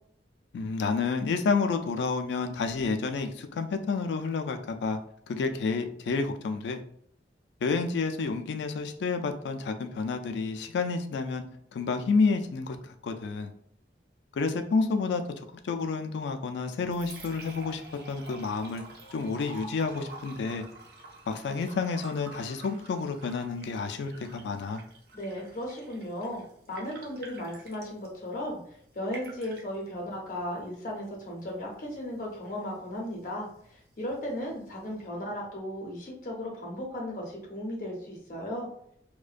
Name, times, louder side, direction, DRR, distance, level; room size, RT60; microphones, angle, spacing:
voice 1, 0.5-5.0 5.3-6.8 7.6-11.4 11.7-13.5 14.3-15.2 15.6-18.8 19.1-20.6 21.3-24.8, left 4 dB, 80° left, 7 dB, 0.3 m, -30 dB
Liquid, 16.6-35.6, right 2 dB, 60° right, 0.6 m, -50 dB
voice 2, 25.1-26.4 26.7-38.7, left 1 dB, 45° left, -2 dB, 0.6 m, -36 dB
2.4 x 2.1 x 2.4 m, 0.66 s
head